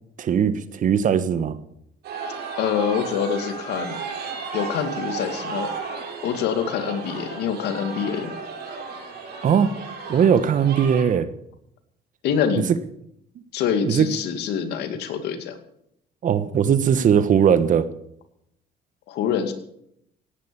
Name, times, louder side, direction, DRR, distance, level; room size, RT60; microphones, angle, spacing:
voice 1, 0.2-1.6 9.4-9.7 10.1-11.3 13.8-14.1 16.2-17.9, right 8 dB, 50° right, 12 dB, 1.3 m, -19 dB
sound 1, 2.0-11.0, right 5 dB, 75° right, 7.9 m, -34 dB
voice 2, 2.6-4.0 4.5-5.7 6.2-8.4 12.2-12.7 13.5-15.6 19.1-19.5, left 7 dB, 80° left, 7 dB, 2.5 m, -25 dB
17.0 x 10.5 x 7.1 m, 0.73 s
cardioid pair, 110°, 17 cm